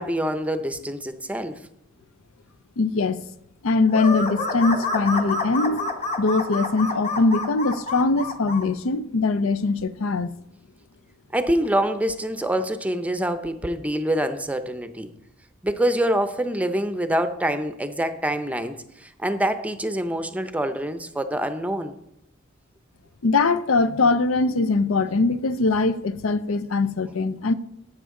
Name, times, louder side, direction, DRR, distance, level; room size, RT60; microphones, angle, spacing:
voice 1, 0.0-1.6 11.3-15.1 15.6-21.9, right 1 dB, 5° right, 0.6 m, -25 dB
voice 2, 2.8-3.2 3.6-10.3 23.2-27.5, left 3 dB, 80° left, 0.6 m, -22 dB
sound 1, 3.9-8.6, left 3 dB, 30° left, 1.0 m, -28 dB
12.5 x 8.7 x 3.7 m
head